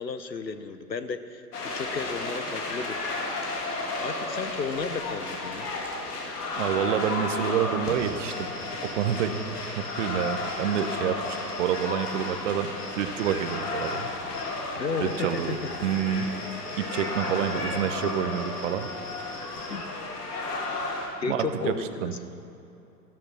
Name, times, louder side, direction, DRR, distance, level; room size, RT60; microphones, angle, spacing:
voice 1, 0.0-3.0 4.0-5.7 14.8-15.4 19.7-19.9 21.2-22.1, left 5 dB, 85° left, 11 dB, 1.0 m, -33 dB
sound 1, 1.5-21.1, left 2 dB, 65° left, 2.7 m, -33 dB
voice 2, 6.6-8.5 8.8-9.3 9.8-12.7 13.0-14.1 15.0-15.6 15.8-16.3 16.8-18.9 21.3-22.1, right 9 dB, 45° right, 10 dB, 1.1 m, -28 dB
sound 2, 7.9-19.9, left 2 dB, 25° left, 2.7 m, -47 dB
13.5 x 13.5 x 6.0 m, 2.7 s
figure-of-eight pair, 105°, 50 cm